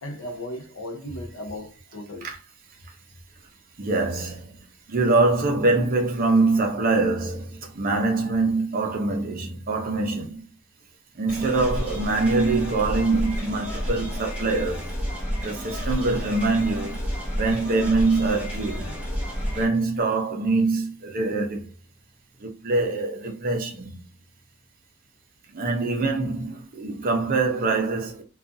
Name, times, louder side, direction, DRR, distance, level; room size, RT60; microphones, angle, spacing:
voice 1, 0.0-2.3 11.3-11.5, left 1 dB, 65° left, 0.6 m, -36 dB
voice 2, 3.8-4.6 4.9-10.5 11.2-14.9 15.4-17.0 17.4-18.9 19.5-21.7 22.4-23.9 25.5-28.2, right 3 dB, 40° right, 0.5 m, -24 dB
sound 1, 11.3-19.7, equal, 5° right, 1.0 m, -30 dB
2.5 x 2.3 x 2.5 m
head